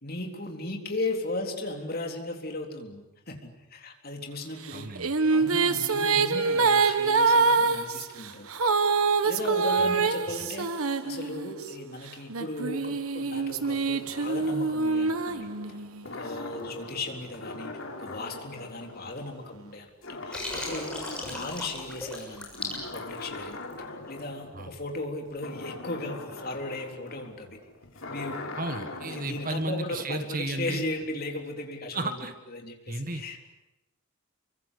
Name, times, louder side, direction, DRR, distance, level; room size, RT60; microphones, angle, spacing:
voice 1, 0.0-4.9 5.3-8.5 9.2-10.7 11.0-15.5 16.0-17.7 18.0-20.9 21.2-27.6 28.1-28.4 29.1-32.1 32.5-33.5, left 2 dB, 45° left, 3 dB, 3.9 m, -36 dB
voice 2, 4.7-5.2 9.8-10.0 21.3-21.4 24.5-24.7 28.6-30.8 31.9-32.3 32.9-33.2, right 2 dB, 40° right, 8 dB, 1.6 m, -33 dB
sound 1, 4.7-11.7 12.3-16.0, right 4 dB, 80° right, 1.4 m, -25 dB
sound 2, 13.3-19.7 20.0-22.1 22.5-29.6, left 2 dB, 65° left, 3.7 m, -42 dB
Water, 20.3-23.8, left 2 dB, 5° left, 6.9 m, -37 dB
29.0 x 23.5 x 8.4 m, 0.98 s
head